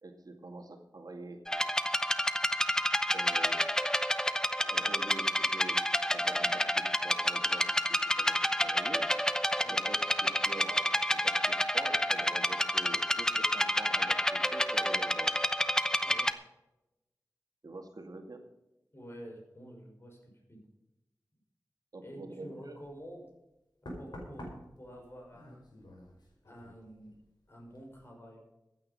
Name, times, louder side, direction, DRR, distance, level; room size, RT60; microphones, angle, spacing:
voice 1, 0.0-1.4 3.1-3.6 4.6-5.8 6.1-9.1 9.7-15.4 17.6-18.4 21.9-22.8, right 2 dB, 65° right, 4 dB, 2.1 m, -46 dB
sound 1, 1.5-16.3, equal, 10° left, 0.8 m, -29 dB
voice 2, 16.0-16.3 18.9-20.6 22.0-23.3 24.0-25.6 26.4-27.2 27.5-28.6, equal, 35° left, 0 dB, 6.0 m, -49 dB
Knock, 22.8-23.0 23.9-27.3 27.6-28.0, equal, 85° left, 5.3 m, -48 dB
15.5 x 9.6 x 5.4 m, 0.95 s
wide cardioid pair, 65°, 7 cm